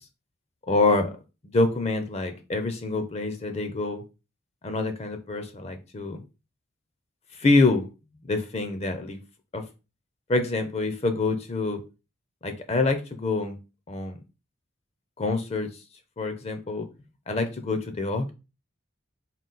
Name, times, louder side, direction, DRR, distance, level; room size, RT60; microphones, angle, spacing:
voice 1, 0.7-1.1 1.5-4.0 4.6-6.2 7.4-7.9 8.2-9.2 9.5-9.6 10.3-11.8 12.4-13.6 13.9-14.2 15.2-15.7 16.2-16.9 17.3-18.3, left 3 dB, 30° left, 7 dB, 0.4 m, -26 dB
3.8 x 2.3 x 3.8 m, 0.29 s
head